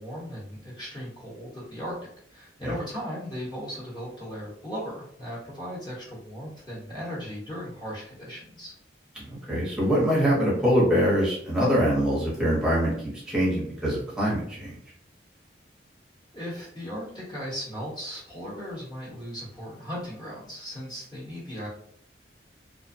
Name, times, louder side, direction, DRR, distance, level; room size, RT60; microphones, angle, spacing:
voice 1, 0.0-2.0 2.3-8.7 16.3-21.7, equal, 25° left, -6 dB, 1.0 m, -37 dB
voice 2, 9.2-12.9 13.3-14.7, equal, 5° right, -7 dB, 0.8 m, -24 dB
2.4 x 2.1 x 2.6 m, 0.65 s
head